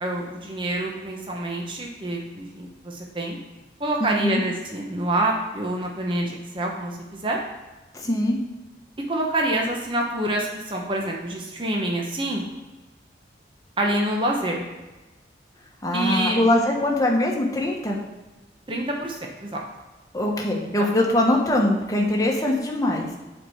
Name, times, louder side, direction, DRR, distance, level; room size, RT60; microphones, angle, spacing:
voice 1, 0.0-3.4 3.8-7.4 9.1-12.4 13.8-14.6 15.9-16.4 18.7-19.6 20.8-20.9, right 1 dB, 25° right, 0 dB, 0.9 m, -27 dB
voice 2, 4.0-4.4 7.9-8.4 15.8-18.0 20.1-23.1, left 1 dB, 20° left, -1 dB, 1.2 m, -22 dB
7.5 x 4.5 x 6.4 m, 1.2 s
head